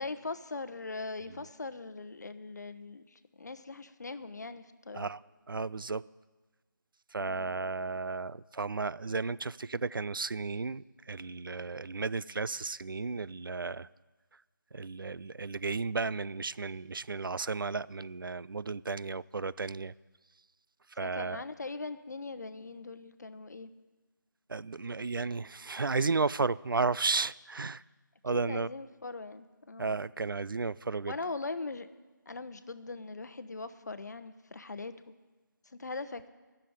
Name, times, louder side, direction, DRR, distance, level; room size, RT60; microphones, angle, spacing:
voice 1, 0.0-5.1 7.2-7.6 21.0-23.7 28.3-30.0 31.1-31.9 32.3-34.9 35.6-36.3, left 3 dB, 55° left, 12 dB, 0.8 m, -41 dB
voice 2, 5.5-6.0 7.1-13.9 14.7-19.9 21.0-21.4 24.5-27.8 28.2-28.7 29.8-31.2, right 4 dB, 85° right, 20 dB, 0.4 m, -33 dB
13.5 x 6.9 x 9.4 m, 1.3 s
figure-of-eight pair, 160°, 11 cm